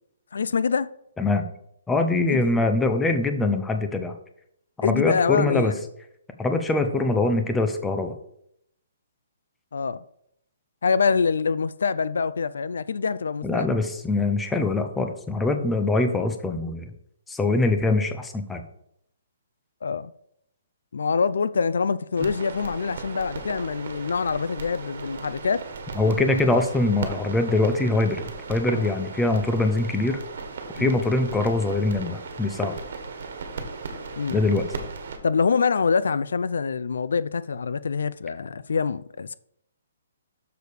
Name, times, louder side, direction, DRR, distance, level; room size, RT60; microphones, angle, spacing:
voice 1, 0.3-0.9 2.3-2.5 4.8-5.8 9.7-10.0 10.8-13.7 19.8-20.1 20.9-25.6 26.0-26.6 30.8-31.0 34.2-34.4 35.2-39.3, left 5 dB, 80° left, 0.4 m, -25 dB
voice 2, 1.9-4.2 4.8-5.7 6.4-8.1 13.4-16.9 17.3-18.6 25.9-30.2 30.8-32.7 34.3-34.7, left 2 dB, 5° left, 0.6 m, -23 dB
sound 1, 22.2-35.2, right 4 dB, 55° right, 1.7 m, -36 dB
6.9 x 6.4 x 5.0 m
hypercardioid pair, 165°, 0 cm